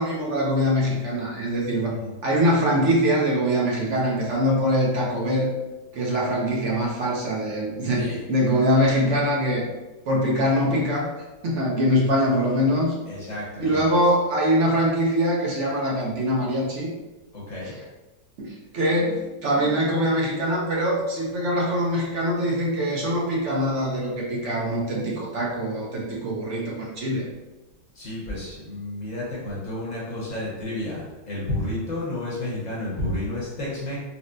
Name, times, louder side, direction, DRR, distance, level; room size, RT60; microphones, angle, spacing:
voice 1, 0.0-1.9 2.2-5.5 5.9-9.6 10.1-11.1 11.4-12.9 13.6-16.9 17.6-17.8 18.4-27.2, equal, 60° right, -4 dB, 0.8 m, -23 dB
voice 2, 7.9-8.2 13.1-14.0 17.3-17.7 27.9-34.0, left 1 dB, 30° left, -6 dB, 0.9 m, -31 dB
4.2 x 2.1 x 2.5 m, 1.1 s
omnidirectional pair, 1.9 m